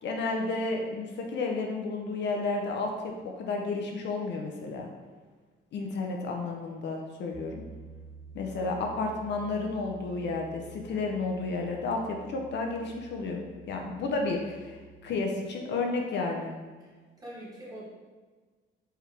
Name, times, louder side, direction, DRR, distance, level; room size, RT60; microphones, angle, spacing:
voice 1, 0.0-4.9 5.7-7.6 8.3-16.5, left 3 dB, 60° left, 1 dB, 0.6 m, -32 dB
Piano, 7.3-15.0, right 5 dB, 40° right, 0.6 m, -49 dB
voice 2, 16.8-17.8, right 1 dB, 15° right, -7 dB, 1.4 m, -45 dB
4.7 x 3.3 x 3.3 m, 1.4 s
cardioid pair, 150°, 21 cm